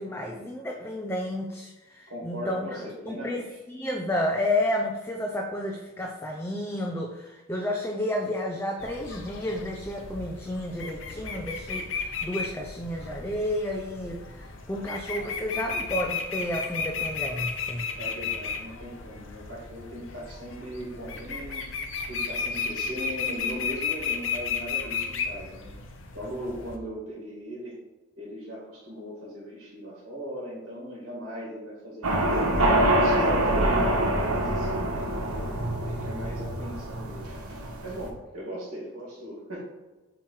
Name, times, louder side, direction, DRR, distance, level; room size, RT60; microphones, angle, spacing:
voice 1, 0.0-2.8 3.1-3.4 3.7-17.9, left 1 dB, 10° left, 1 dB, 0.4 m, -31 dB
voice 2, 2.1-3.6 18.0-25.7 26.1-27.8 28.2-32.5 32.9-35.5 35.7-37.4 37.8-39.6, equal, 60° right, -5 dB, 2.1 m, -38 dB
sound 1, 8.8-26.8, left 5 dB, 60° left, 0.7 m, -34 dB
sound 2, 32.0-38.1, right 1 dB, 90° right, 1.1 m, -25 dB
7.4 x 3.0 x 4.7 m, 1.2 s
head